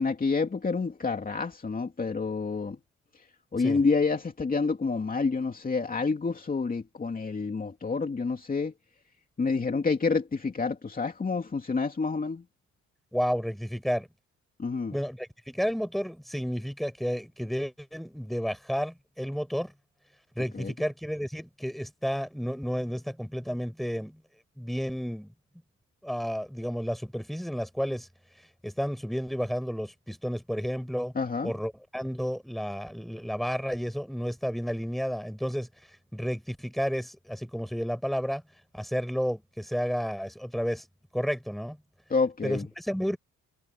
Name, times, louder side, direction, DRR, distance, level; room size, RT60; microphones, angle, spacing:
voice 1, 0.0-2.8 3.5-8.7 9.4-12.4 14.6-14.9 20.5-20.7 31.2-31.5 42.1-42.6, left 4 dB, 30° left, 2.6 m, -28 dB
voice 2, 13.1-14.1 14.9-19.7 20.4-24.2 24.6-25.3 26.0-28.1 28.6-31.1 31.4-35.7 36.1-38.4 38.7-40.9 41.1-41.8 42.4-43.2, equal, ahead, 6.3 m, -31 dB
cardioid pair, 90°, 30 cm